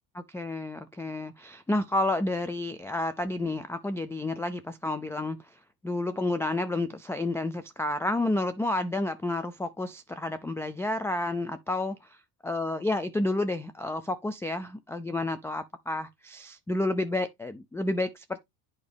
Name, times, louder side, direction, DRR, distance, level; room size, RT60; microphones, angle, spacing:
voice 1, 0.1-5.6 5.8-12.2 12.4-18.4, left 2 dB, 5° left, 0.3 m, -30 dB
8.4 x 5.2 x 3.4 m
supercardioid pair, 110°, 47 cm